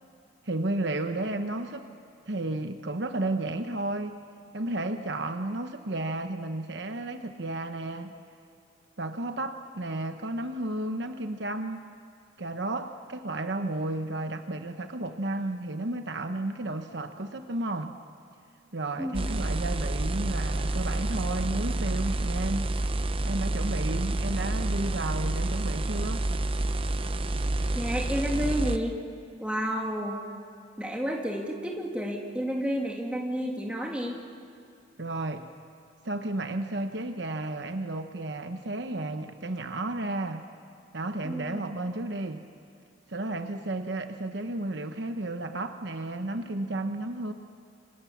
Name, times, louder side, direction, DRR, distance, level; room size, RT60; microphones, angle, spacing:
voice 1, 0.4-1.9 2.3-4.2 4.5-8.1 9.0-11.8 12.4-18.0 18.7-22.8 23.2-26.3 35.0-35.5 36.0-40.4 40.9-42.4 43.1-47.3, right 2 dB, 60° right, 7 dB, 1.1 m, -32 dB
sound 1, 19.1-28.8, right 2 dB, 30° right, 0.7 m, -29 dB
voice 2, 27.7-29.0 29.4-30.2 30.8-34.2 41.2-41.6, equal, 5° right, -1 dB, 2.9 m, -31 dB
27.5 x 25.5 x 7.3 m, 2.4 s
head